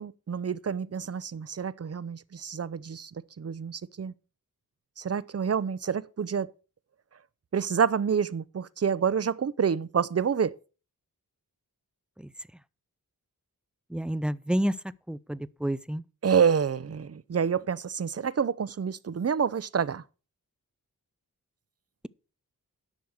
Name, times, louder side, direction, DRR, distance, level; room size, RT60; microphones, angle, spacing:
voice 1, 0.0-3.1 3.4-4.1 5.0-6.5 7.5-10.5 16.2-20.0, right 7 dB, 45° right, 0.6 m, -28 dB
voice 2, 13.9-14.8 15.1-16.0, equal, 5° right, 0.4 m, -29 dB
10.5 x 6.3 x 6.5 m
wide cardioid pair, 65°, 36 cm